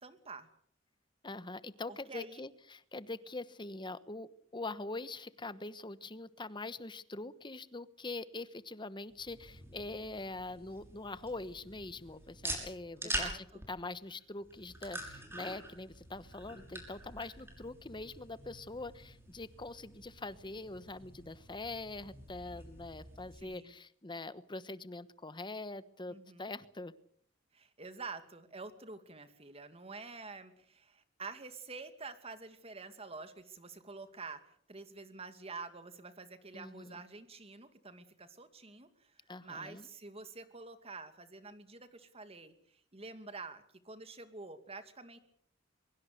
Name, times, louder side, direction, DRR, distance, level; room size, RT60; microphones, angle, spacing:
voice 1, 0.0-0.5 1.9-2.4 13.0-13.6 23.3-23.7 26.1-26.5 27.5-34.4 34.7-42.5 42.9-45.2, right 4 dB, 30° right, 10 dB, 2.4 m, -48 dB
voice 2, 1.2-26.9 36.5-37.0 39.3-39.9, left 2 dB, 25° left, 15 dB, 1.1 m, -43 dB
sound 1, 9.1-23.4, right 1 dB, 15° right, 6.2 m, -46 dB
23.5 x 22.5 x 6.7 m, 0.62 s
head